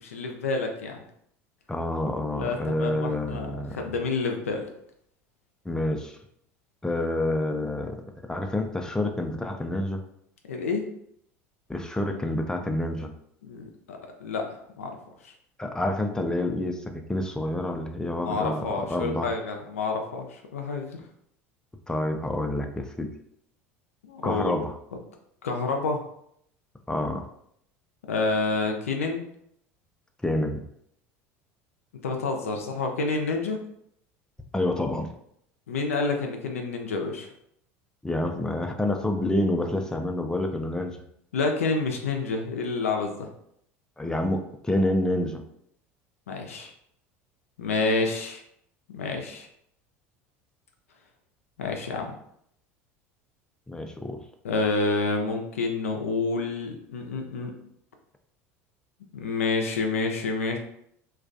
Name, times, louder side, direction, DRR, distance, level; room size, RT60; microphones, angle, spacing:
voice 1, 0.0-1.0 2.3-4.7 10.5-10.9 13.4-15.0 15.2-15.3 18.1-21.0 24.1-24.5 25.4-26.0 28.1-29.2 32.0-33.6 35.7-37.3 41.3-43.3 46.3-46.7 47.6-48.4 48.9-49.5 51.6-52.2 54.4-57.5 59.1-60.6, left 3 dB, 90° left, 3 dB, 0.4 m, -28 dB
voice 2, 1.7-3.9 5.7-6.2 6.8-8.0 8.3-10.0 11.7-13.1 15.6-18.6 18.9-19.3 21.9-23.1 24.2-24.7 26.9-27.2 30.2-30.6 34.5-35.1 38.0-41.0 44.0-45.4 53.7-54.2, left 1 dB, 10° left, 4 dB, 0.3 m, -28 dB
2.3 x 2.2 x 2.5 m, 0.71 s
hypercardioid pair, 80°, 7 cm